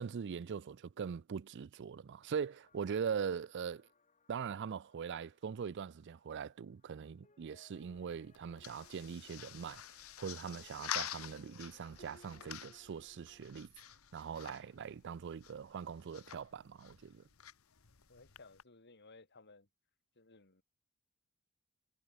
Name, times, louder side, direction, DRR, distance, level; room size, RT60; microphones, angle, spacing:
voice 1, 0.0-3.9 4.3-9.8 10.2-13.7 14.1-17.2, right 6 dB, 55° right, 0.4 m, -41 dB
sound 1, 2.2-13.5, left 2 dB, 35° left, 2.7 m, -68 dB
sound 2, 7.7-18.6, left 10 dB, 75° left, 1.3 m, -48 dB
voice 2, 18.1-19.7 20.1-20.6, left 3 dB, 50° left, 2.9 m, -59 dB
head